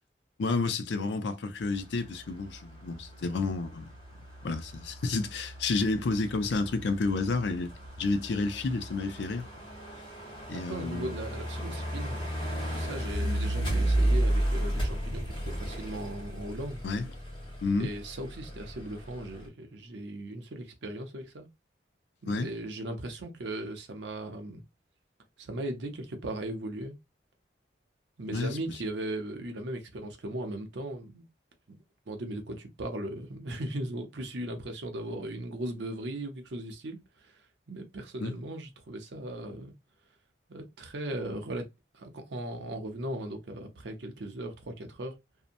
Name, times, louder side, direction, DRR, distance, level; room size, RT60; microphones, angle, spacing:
voice 1, 0.4-3.9 4.4-7.7 8.0-9.4 10.5-11.1 16.8-17.1 17.6-17.9 22.3-22.5 28.3-28.6 38.2-38.3, left 3 dB, 80° left, 0.5 m, -30 dB
sound 1, 1.6-19.5, right 1 dB, 25° left, 1.0 m, -34 dB
voice 2, 10.5-16.8 17.8-21.5 22.2-24.6 25.4-26.9 28.2-31.3 31.7-31.8 32.1-39.8 40.5-41.7 41.9-45.1, right 1 dB, 80° right, 0.6 m, -38 dB
2.7 x 2.1 x 2.5 m
head